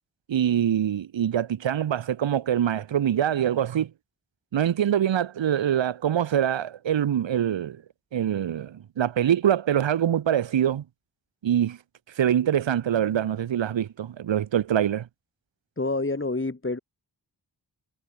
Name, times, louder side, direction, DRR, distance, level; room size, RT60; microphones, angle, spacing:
voice 1, 0.3-3.9 4.5-7.8 8.1-10.8 11.4-11.8 12.2-15.1, right 10 dB, 85° right, 0.9 m, -24 dB
voice 2, 15.8-16.8, left 2 dB, 30° left, 2.9 m, -27 dB
wide cardioid pair, 70°, 44 cm